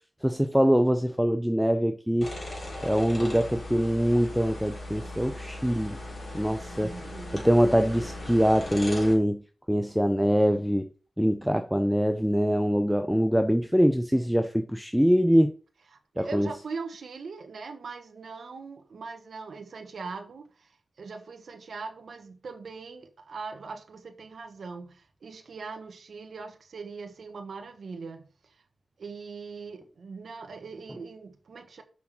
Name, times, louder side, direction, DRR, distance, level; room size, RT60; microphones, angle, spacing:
voice 1, 0.2-2.3 2.8-6.0 6.3-6.9 7.3-9.4 9.7-10.9 11.2-15.5 16.2-16.5, equal, ahead, 0.6 m, -23 dB
sound 1, 2.2-9.2, left 1 dB, 40° left, 4.0 m, -38 dB
voice 2, 6.8-7.4 15.9-28.2 28.5-28.6 29.0-31.8, right 4 dB, 70° right, 1.3 m, -41 dB
5.9 x 5.8 x 6.0 m
wide cardioid pair, 90°, 0 cm